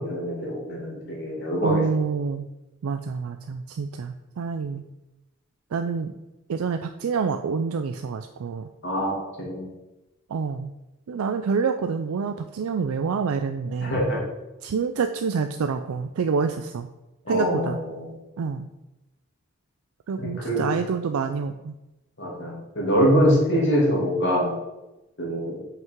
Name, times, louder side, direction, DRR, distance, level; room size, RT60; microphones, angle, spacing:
voice 1, 0.0-1.8 8.8-9.7 13.8-14.2 17.2-18.1 20.2-20.7 22.2-24.5 25.2-25.6, equal, 55° left, -4 dB, 2.5 m, -24 dB
voice 2, 1.6-2.5 2.8-4.8 5.7-6.2 6.5-8.7 10.3-10.7 11.1-14.0 14.6-16.9 17.3-17.8 18.4-18.7 20.1-21.8, right 5 dB, 85° right, 7 dB, 0.4 m, -27 dB
5.8 x 5.6 x 4.5 m, 0.98 s
head